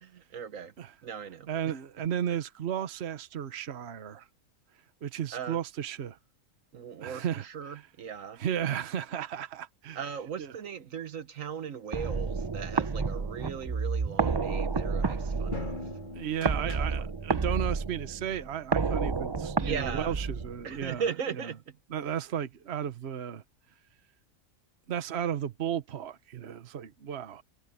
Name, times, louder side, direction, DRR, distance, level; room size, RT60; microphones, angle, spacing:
voice 1, 0.0-0.7 1.0-1.5 5.3-5.6 6.7-8.4 9.9-15.9 16.5-16.7 19.6-20.2 20.6-21.8, right 7 dB, 70° right, 1.4 m, -38 dB
voice 2, 1.5-4.3 5.0-6.2 6.7-7.8 8.4-10.0 10.4-10.5 16.1-21.0 21.9-23.4 24.9-27.4, right 9 dB, 55° right, 1.2 m, -34 dB
sound 1, 11.9-20.9, right 4 dB, 35° right, 0.4 m, -30 dB
sound 2, 14.4-17.4, left 3 dB, 35° left, 3.3 m, -43 dB
omnidirectional pair, 1.4 m